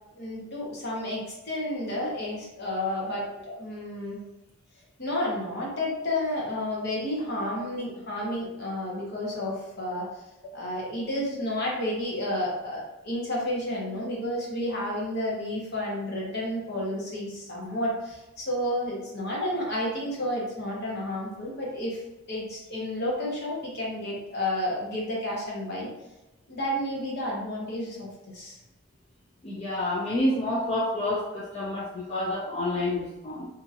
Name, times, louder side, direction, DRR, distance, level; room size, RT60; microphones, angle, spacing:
voice 1, 0.1-4.2 5.0-10.1 10.5-22.0 22.3-25.9 26.5-28.6, left 1 dB, 50° left, -4 dB, 0.9 m, -31 dB
voice 2, 29.4-33.5, left 1 dB, 30° left, -7 dB, 0.4 m, -29 dB
2.8 x 2.6 x 2.5 m, 0.98 s
head